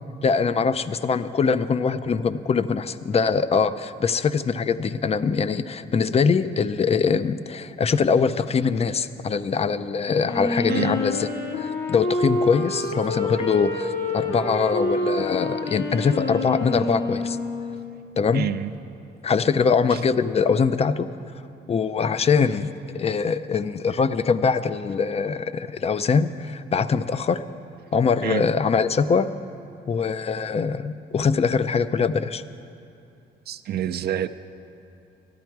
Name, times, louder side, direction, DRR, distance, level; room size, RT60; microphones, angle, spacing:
voice 1, 0.2-11.3 11.6-17.4 18.2-18.5 19.2-21.1 21.7-27.4 27.9-29.3 29.9-32.4, left 5 dB, 30° left, 14 dB, 0.4 m, -23 dB
Wind instrument woodwind instrument, 10.2-17.9, left 2 dB, 70° left, 1.8 m, -27 dB
voice 2, 10.7-11.0 18.3-18.7 19.9-20.0 28.2-28.5 33.5-34.3, right 10 dB, 55° right, 11 dB, 0.4 m, -27 dB
13.0 x 12.0 x 4.6 m, 2.7 s
cardioid pair, 90°, 20 cm